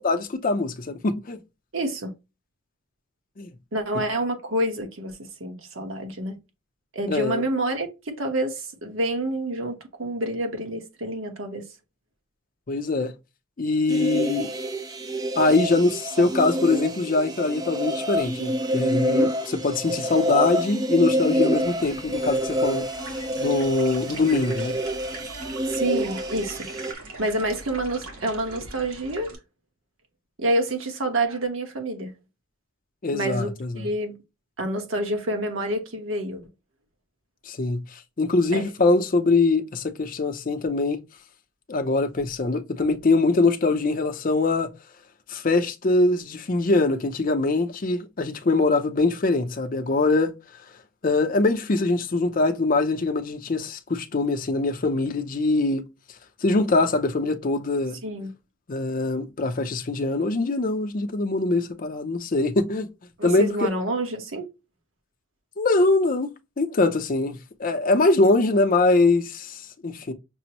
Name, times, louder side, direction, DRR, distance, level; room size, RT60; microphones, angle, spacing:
voice 1, 0.0-1.4 3.4-3.5 7.1-7.4 12.7-13.1 13.6-14.5 15.4-22.9 23.4-24.8 33.0-33.9 37.5-41.0 41.7-44.7 45.3-50.3 51.0-55.8 56.4-58.0 58.7-62.9 63.2-63.7 65.6-66.3 66.6-70.1, left 3 dB, 40° left, 0.5 m, -23 dB
voice 2, 1.7-2.1 3.7-6.4 6.9-11.6 25.6-26.7 27.2-29.3 30.4-32.1 33.1-34.2 34.6-36.4 38.5-38.7 58.0-58.3 63.2-64.5, right 1 dB, 65° right, 1.0 m, -28 dB
sound 1, 13.9-26.9, equal, 20° right, 0.3 m, -27 dB
sound 2, 21.5-29.3, right 2 dB, 85° right, 1.4 m, -41 dB
6.0 x 2.0 x 2.8 m
head